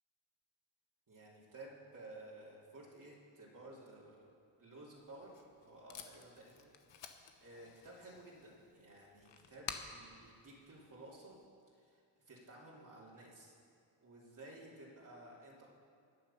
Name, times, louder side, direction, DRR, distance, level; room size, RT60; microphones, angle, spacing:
voice 1, 1.1-4.3 4.6-6.7 7.0-7.1 7.4-11.4 11.8-13.5 14.0-15.7, right 2 dB, 45° right, -5 dB, 3.1 m, -55 dB
Packing tape duct tape, 5.0-11.4, left 7 dB, 75° left, 1.2 m, -52 dB
17.0 x 10.0 x 5.7 m, 2.2 s
cardioid pair, 95°, 44 cm